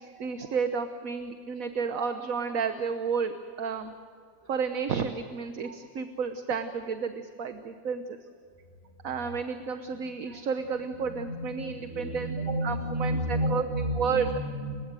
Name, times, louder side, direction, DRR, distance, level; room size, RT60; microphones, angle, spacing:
voice 1, 0.0-3.9 4.5-8.2 9.0-12.4 12.6-13.6 13.9-14.3, right 6 dB, 60° right, 8 dB, 1.5 m, -31 dB
voice 2, 11.0-14.8, equal, 30° right, 1 dB, 7.1 m, -31 dB
29.5 x 16.5 x 7.7 m, 2.1 s
omnidirectional pair, 1.7 m